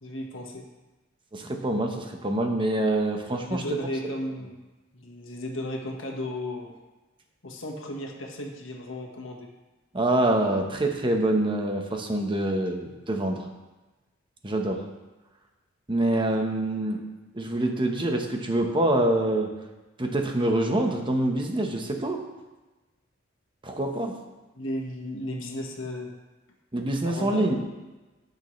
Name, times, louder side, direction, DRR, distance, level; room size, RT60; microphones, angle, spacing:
voice 1, 0.0-0.6 3.4-4.5 4.9-6.8 7.4-9.5 24.5-26.1 27.0-27.6, left 1 dB, 70° left, 1 dB, 1.5 m, -34 dB
voice 2, 1.3-3.6 9.9-13.5 14.4-14.8 15.9-17.0 17.3-19.5 20.0-22.2 23.6-24.2 26.7-27.6, right 1 dB, 25° right, 3 dB, 1.1 m, -25 dB
16.5 x 6.6 x 3.2 m, 1.2 s
head